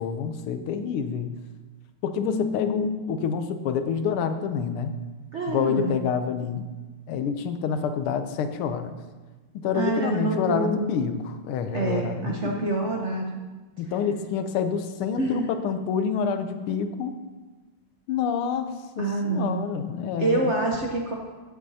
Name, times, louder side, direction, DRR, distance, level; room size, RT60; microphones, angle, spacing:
voice 1, 0.0-1.3 2.0-5.0 5.5-6.6 7.1-9.0 9.5-12.6 13.8-17.2 18.1-20.5, left 6 dB, 90° left, 9 dB, 1.6 m, -28 dB
voice 2, 2.2-3.1 5.3-6.0 9.7-10.9 11.7-13.5 15.2-15.5 19.0-19.7 20.2-21.1, right 2 dB, 55° right, -1 dB, 0.8 m, -27 dB
14.0 x 8.7 x 2.8 m, 1.3 s
omnidirectional pair, 2.3 m